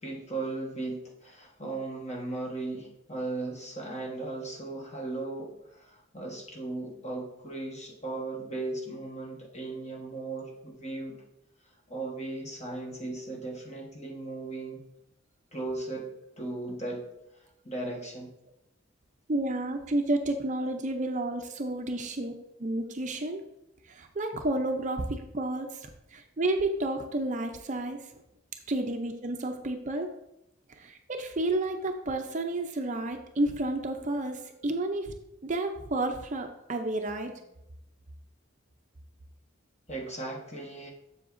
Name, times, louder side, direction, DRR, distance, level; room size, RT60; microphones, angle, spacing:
voice 1, 0.0-11.2 11.9-14.8 15.5-16.1 16.4-17.0 17.6-18.3 39.9-40.9, right 2 dB, 30° left, -1 dB, 1.3 m, -37 dB
voice 2, 19.3-23.4 23.9-28.0 28.7-30.1 30.8-35.1 35.4-37.3, right 2 dB, 35° right, 5 dB, 0.5 m, -31 dB
7.6 x 7.0 x 2.6 m, 0.86 s
head